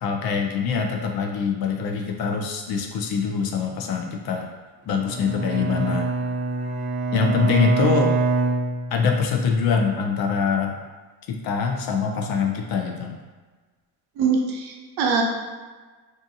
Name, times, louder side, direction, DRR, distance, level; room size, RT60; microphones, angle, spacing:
voice 1, 0.0-4.5 4.9-6.1 7.1-8.1 8.9-10.8 11.3-13.2, left 5 dB, 60° left, 3 dB, 0.5 m, -24 dB
Bowed string instrument, 5.0-9.4, right 3 dB, 20° right, 0.7 m, -25 dB
voice 2, 14.2-15.2, right 5 dB, 65° right, 1 dB, 0.6 m, -23 dB
2.7 x 2.3 x 2.6 m, 1.3 s
cardioid pair, 110°, 41 cm